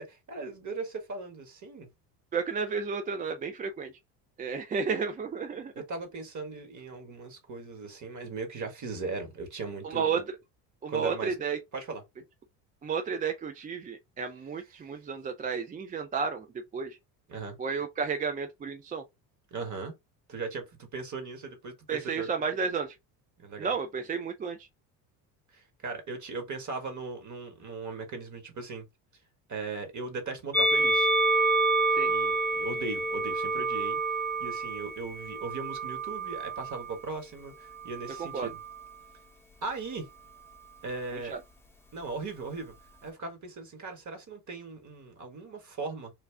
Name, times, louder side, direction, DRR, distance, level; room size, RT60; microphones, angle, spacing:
voice 1, 0.0-1.9 5.7-10.0 10.9-11.3 11.7-12.0 17.3-17.6 19.5-19.9 20.3-22.3 23.4-23.7 25.5-28.9 29.5-31.1 32.0-34.0 34.4-38.6 39.6-40.1 40.8-41.3 41.9-42.7 43.0-46.1, right 4 dB, 35° right, 1.6 m, -38 dB
voice 2, 2.3-3.9 4.4-5.7 9.8-10.3 10.8-11.6 12.8-16.5 16.7-17.0 17.6-19.0 21.9-23.0 23.6-24.7 31.9-32.1 38.2-38.5 41.2-41.4, right 5 dB, 20° right, 0.4 m, -32 dB
Musical instrument, 30.5-36.9 37.8-38.8, right 2 dB, 5° left, 0.8 m, -28 dB
3.3 x 2.4 x 3.4 m
hypercardioid pair, 70°, 48 cm